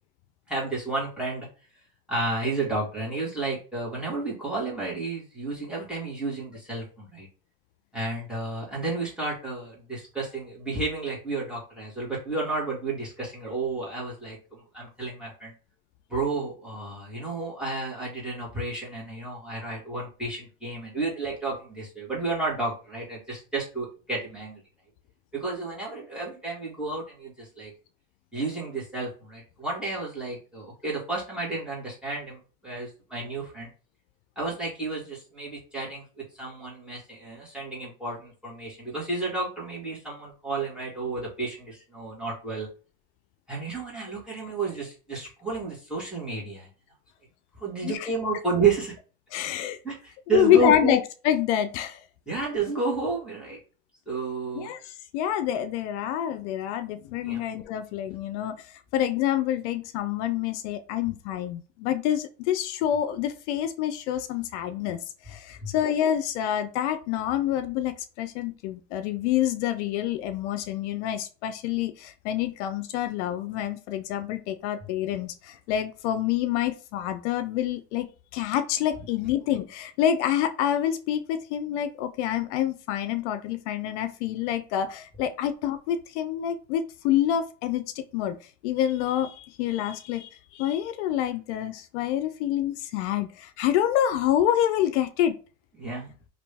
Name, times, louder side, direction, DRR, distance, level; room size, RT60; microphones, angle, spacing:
voice 1, 0.5-1.5 2.1-7.3 7.9-15.5 16.1-24.6 25.3-27.7 28.3-33.7 34.3-42.7 43.5-46.7 47.6-48.9 49.8-50.9 52.3-53.6 54.1-54.7 57.2-57.4 65.6-65.7 79.2-79.3 95.8-96.1, right 3 dB, ahead, -6 dB, 1.7 m, -31 dB
voice 2, 49.3-49.8 50.3-52.0 54.6-65.0 65.3-88.4 88.6-95.4, left 11 dB, 75° left, 10 dB, 0.5 m, -27 dB
3.0 x 2.7 x 3.4 m, 0.35 s
supercardioid pair, 135°, 35 cm